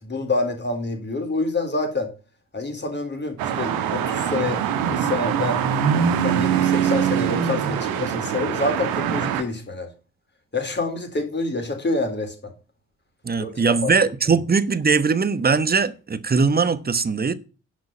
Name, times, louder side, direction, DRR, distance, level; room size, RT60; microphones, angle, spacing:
voice 1, 0.0-2.1 2.5-5.6 6.1-9.9 10.5-12.5 13.4-13.9, left 3 dB, 30° left, 4.2 m, -27 dB
sound 1, 3.4-9.4, right 8 dB, 65° right, 1.6 m, -23 dB
voice 2, 13.2-17.3, right 5 dB, 25° right, 1.2 m, -20 dB
10.5 x 6.4 x 7.2 m
figure-of-eight pair, 40°, 38 cm